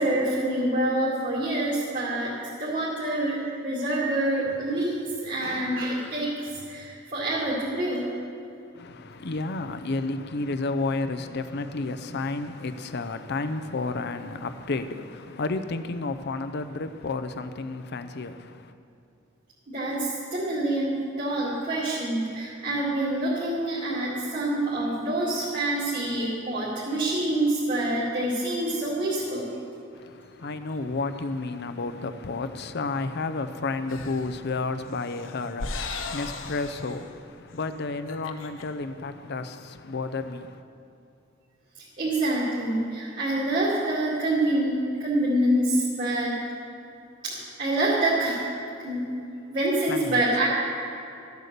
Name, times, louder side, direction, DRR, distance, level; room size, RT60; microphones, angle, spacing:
voice 1, 0.0-5.0 5.2-8.1 19.7-29.5 42.0-46.4 47.2-48.4 48.8-49.2 49.5-50.5, right 1 dB, 45° right, 2.3 m, -26 dB
voice 2, 8.7-18.7 29.9-40.6 49.9-50.2, left 3 dB, 60° left, 0.6 m, -31 dB
sound 1, 33.9-34.3 34.9-37.1 37.5-37.6 37.9-38.6, left 3 dB, 85° left, 0.9 m, -37 dB
13.0 x 8.2 x 6.7 m
head